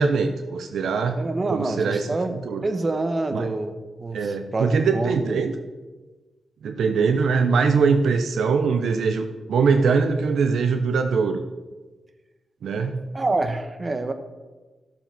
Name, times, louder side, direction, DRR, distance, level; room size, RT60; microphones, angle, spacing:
voice 1, 0.0-2.6 3.3-3.5 4.1-5.5 6.6-11.4 12.6-13.1, right 5 dB, 85° right, 7 dB, 0.7 m, -22 dB
voice 2, 1.2-2.4 2.6-5.4 13.1-14.1, right 2 dB, 40° right, 8 dB, 1.2 m, -26 dB
12.0 x 7.1 x 5.8 m, 1.2 s
cardioid pair, 60°, 0 cm